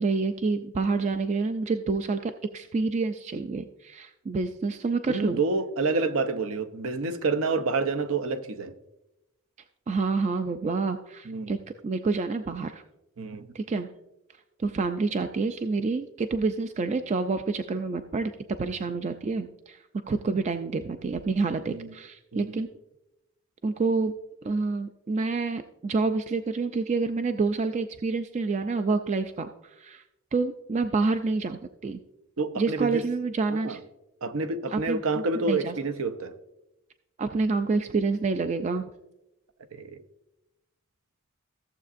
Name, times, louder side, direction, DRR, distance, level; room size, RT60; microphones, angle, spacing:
voice 1, 0.0-5.4 9.9-11.6 11.8-12.8 13.5-13.9 14.6-18.3 18.6-22.7 23.6-24.1 24.4-30.0 30.3-32.0 32.6-33.8 34.7-35.7 37.2-38.8, right 4 dB, 30° right, 9 dB, 0.3 m, -28 dB
voice 2, 5.1-8.7 11.3-11.5 13.2-13.5 21.7-21.9 22.3-22.6 32.4-33.0 33.5-33.8 34.2-36.3 39.7-40.0, right 3 dB, 70° right, 9 dB, 0.7 m, -28 dB
14.5 x 7.3 x 2.5 m, 0.92 s
head